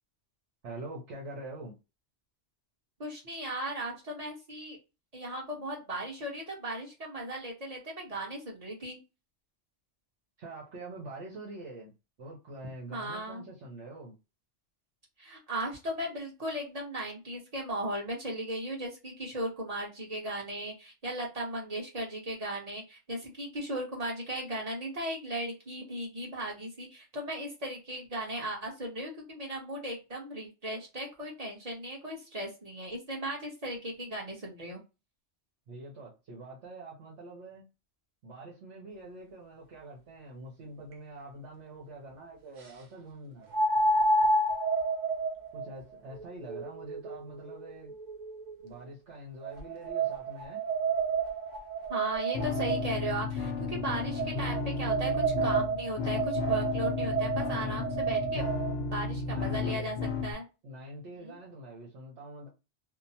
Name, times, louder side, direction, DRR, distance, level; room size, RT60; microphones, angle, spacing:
voice 1, 0.6-1.7 10.4-11.9 12.2-14.2 35.7-37.7 38.2-43.4 45.5-47.9 48.6-50.6 57.4-57.8 59.2-59.9 60.6-62.5, right 1 dB, 70° right, 1.1 m, -45 dB
voice 2, 3.0-4.8 5.1-9.0 12.9-13.5 15.2-34.8 51.9-58.5 58.9-60.0 60.2-60.4 61.2-61.3, right 1 dB, 35° right, 1.0 m, -37 dB
sound 1, 40.9-41.0 43.5-48.7 49.4-53.1 54.1-58.7, right 3 dB, 55° right, 0.6 m, -30 dB
sound 2, 52.3-60.3, left 4 dB, 65° left, 0.7 m, -34 dB
2.9 x 2.0 x 2.7 m
omnidirectional pair, 1.2 m